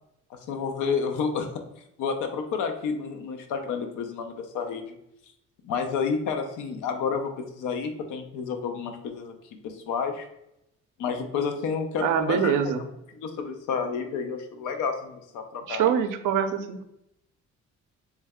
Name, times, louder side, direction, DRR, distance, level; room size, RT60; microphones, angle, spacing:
voice 1, 0.3-1.5 2.0-5.0 5.6-9.3 9.6-10.3 11.0-12.7 13.2-15.8, left 5 dB, 85° left, 5 dB, 0.6 m, -30 dB
voice 2, 12.0-12.8 15.7-16.8, right 8 dB, 90° right, 8 dB, 0.5 m, -24 dB
3.3 x 3.2 x 3.5 m, 0.83 s
cardioid pair, 90°, 30 cm